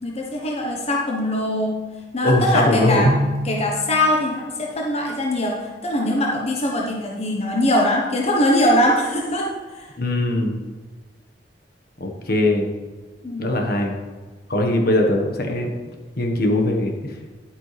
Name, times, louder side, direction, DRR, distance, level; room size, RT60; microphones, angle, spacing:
voice 1, 0.0-1.8 2.1-3.1 3.4-9.9 13.2-13.5, left 1 dB, 35° left, -1 dB, 1.1 m, -22 dB
voice 2, 2.2-3.1 10.0-10.6 12.0-12.7 13.4-13.9 14.5-15.7 16.2-17.1, left 1 dB, 60° left, 2 dB, 1.4 m, -20 dB
Drum, 3.0-5.2, right 1 dB, 75° right, 0.7 m, -27 dB
11.0 x 8.9 x 3.4 m, 1.4 s
head